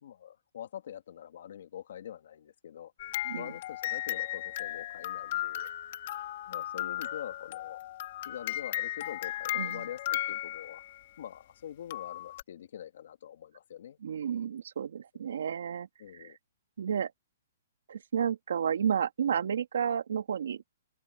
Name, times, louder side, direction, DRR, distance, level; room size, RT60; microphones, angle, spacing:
voice 1, 0.0-5.7 6.5-7.8 8.2-10.8 11.2-14.0 16.0-16.4, left 10 dB, 55° left, 2.3 m, -45 dB
sound 1, 3.0-11.0 11.9-12.4, left 14 dB, 40° left, 2.3 m, -36 dB
voice 2, 9.6-9.9 14.0-15.9 16.1-16.3 16.8-17.1 17.9-20.6, right 8 dB, 70° right, 2.3 m, -31 dB
open air
hypercardioid pair, 175°, 0 cm